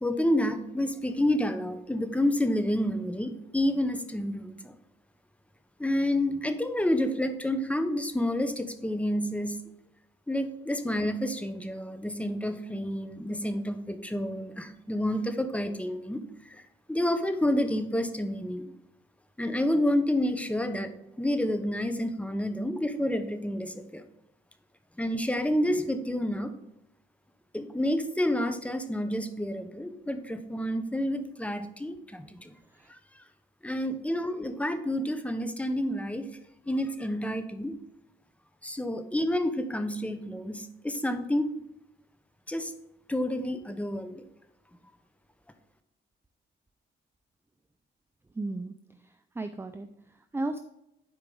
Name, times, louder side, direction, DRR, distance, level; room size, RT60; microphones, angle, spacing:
voice 1, 0.0-4.7 5.8-9.6 10.3-16.6 16.9-18.7 19.4-20.9 21.2-24.0 25.0-26.5 27.5-32.5 32.9-33.2 33.6-36.3 36.7-37.8 38.6-41.5 42.5-42.7 43.1-44.2, left 1 dB, 5° left, 8 dB, 0.9 m, -29 dB
voice 2, 48.3-48.7 49.0-50.6, right 2 dB, 10° right, 8 dB, 0.5 m, -35 dB
11.0 x 4.8 x 3.9 m, 0.84 s
cardioid pair, 90°, 20 cm